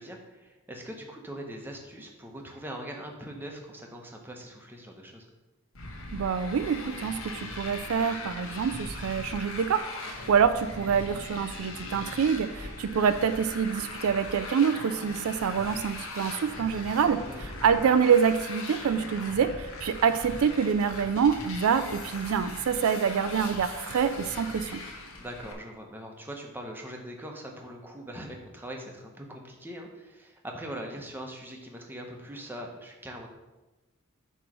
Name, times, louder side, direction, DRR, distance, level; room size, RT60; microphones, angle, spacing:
voice 1, 0.0-5.3 16.9-17.5 23.3-23.5 25.1-33.3, equal, 10° right, 1 dB, 0.9 m, -42 dB
Motorcycle, 5.8-25.5, left 2 dB, 65° left, 1.2 m, -40 dB
voice 2, 6.1-24.8, right 7 dB, 70° right, 11 dB, 0.4 m, -26 dB
8.7 x 3.2 x 6.1 m, 1.1 s
head